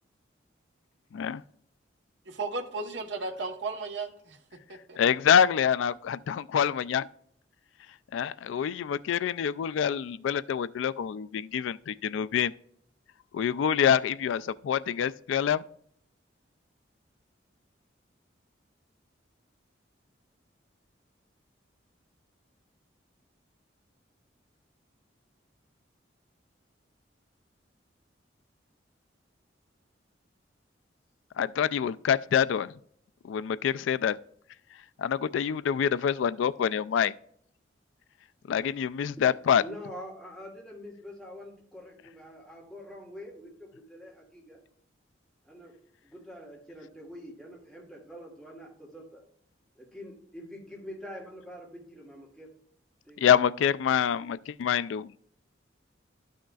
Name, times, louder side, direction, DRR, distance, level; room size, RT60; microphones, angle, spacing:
voice 1, 2.3-4.4 4.7-5.0, right 3 dB, 70° right, 1.1 m, -35 dB
voice 2, 5.0-7.1 8.1-12.5 13.3-15.6 31.4-32.7 33.2-34.2 35.0-37.1 38.5-39.6 53.2-55.1, left 8 dB, 85° left, 0.3 m, -26 dB
voice 3, 39.6-44.6 45.4-45.7 46.0-49.2 49.7-52.5 53.0-53.2, equal, ahead, 1.8 m, -45 dB
12.5 x 6.4 x 2.3 m
head